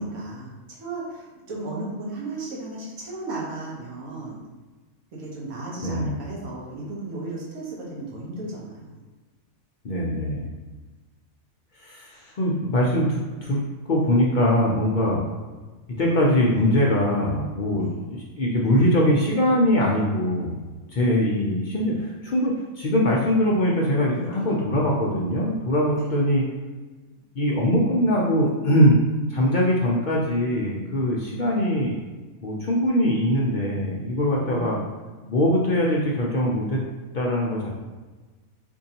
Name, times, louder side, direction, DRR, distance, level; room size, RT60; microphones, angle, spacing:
voice 1, 0.0-4.4 5.1-8.9 17.8-18.0 24.1-24.4 25.9-26.2 34.3-34.8, right 2 dB, 85° right, -4 dB, 1.4 m, -35 dB
voice 2, 5.8-6.2 9.8-10.5 11.8-13.6 13.9-15.2 16.0-20.6 20.9-26.4 27.3-29.0 29.3-32.0 32.4-34.8 35.3-36.8 37.1-37.7, equal, 65° left, -4 dB, 0.4 m, -22 dB
4.5 x 2.6 x 2.8 m, 1.3 s
omnidirectional pair, 1.4 m